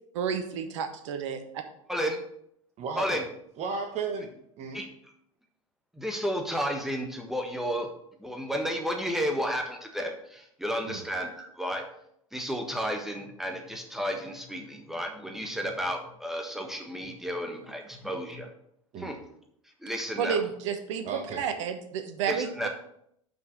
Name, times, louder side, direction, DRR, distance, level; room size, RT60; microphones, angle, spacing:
voice 1, 0.2-1.4 20.2-21.0 21.4-22.7, right 7 dB, 60° right, 7 dB, 1.0 m, -30 dB
voice 2, 1.9-2.2 3.0-3.2 4.7-4.9 5.9-7.9 8.2-11.8 12.3-18.5 19.0-19.2 19.8-20.4 22.3-22.7, equal, ahead, 3 dB, 1.4 m, -32 dB
voice 3, 2.8-3.2 3.6-4.3 4.6-4.8 10.8-11.0 18.9-19.2 21.0-21.4, right 4 dB, 40° right, 3 dB, 1.2 m, -34 dB
5.9 x 5.5 x 6.1 m, 0.74 s
figure-of-eight pair, 75°, 17 cm